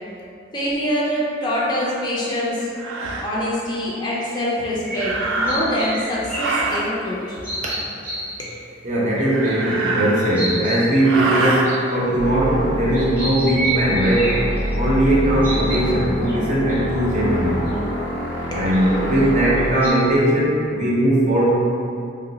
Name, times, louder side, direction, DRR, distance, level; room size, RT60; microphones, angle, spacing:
voice 1, 0.5-2.7 3.2-7.2 8.4-8.5 18.5-18.7 19.1-19.2, equal, 25° left, -6 dB, 0.4 m, -24 dB
sound 1, 1.9-2.0 2.8-3.3 4.9-5.9 6.3-6.9 9.1-10.6 11.0-11.7, right 2 dB, 80° right, 0.3 m, -25 dB
sound 2, 4.2-4.3 4.8-6.6 7.1-8.5 9.2-9.5 9.9-10.0 10.2-10.9 11.5-12.3 12.9-15.0 15.4-15.8 16.3-16.4 16.7-16.8 17.2-17.4 17.7-17.8 18.7-19.2 19.6-19.9, right 2 dB, 10° right, 0.8 m, -29 dB
voice 2, 8.8-14.4 14.7-17.6 18.5-21.5, right 1 dB, 40° right, -6 dB, 0.6 m, -19 dB
sound 3, 12.2-19.7, equal, 90° left, 0.5 m, -26 dB
2.9 x 2.0 x 3.8 m, 2.5 s
head